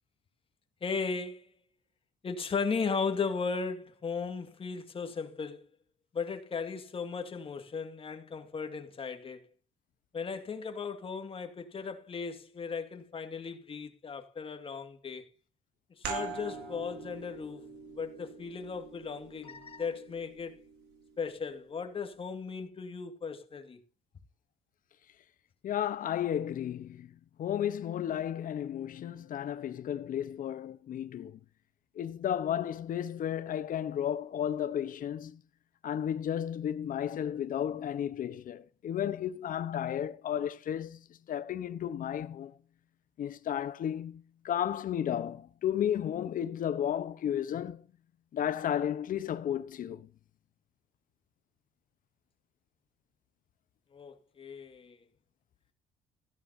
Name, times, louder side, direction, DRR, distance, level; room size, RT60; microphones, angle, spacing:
voice 1, 0.8-1.5 2.2-5.6 6.1-9.4 10.1-15.3 16.1-17.6 18.0-20.6 21.2-23.8 53.9-55.0, left 5 dB, 35° left, 2.3 m, -36 dB
sound 1, 16.0-21.3, right 5 dB, 90° right, 5.3 m, -43 dB
voice 2, 25.6-27.1 27.4-31.4 32.0-35.4 35.8-41.0 41.3-42.5 43.2-47.8 48.3-50.1, left 10 dB, 55° left, 1.1 m, -33 dB
16.0 x 11.0 x 2.9 m
cardioid pair, 110°, 17 cm